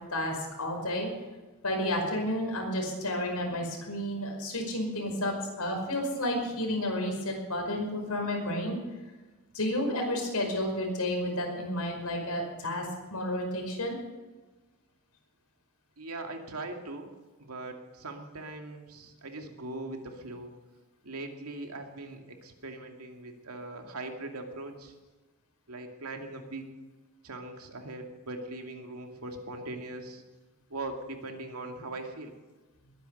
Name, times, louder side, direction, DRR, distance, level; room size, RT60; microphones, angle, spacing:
voice 1, 0.1-1.1 1.6-8.8 9.5-14.0, left 1 dB, 85° left, 2 dB, 5.3 m, -31 dB
voice 2, 16.0-17.1 17.4-20.5 21.0-24.9 25.7-26.6 27.2-30.2 30.7-32.3, right 2 dB, 75° right, 3 dB, 2.5 m, -40 dB
21.0 x 10.5 x 6.6 m, 1.2 s
head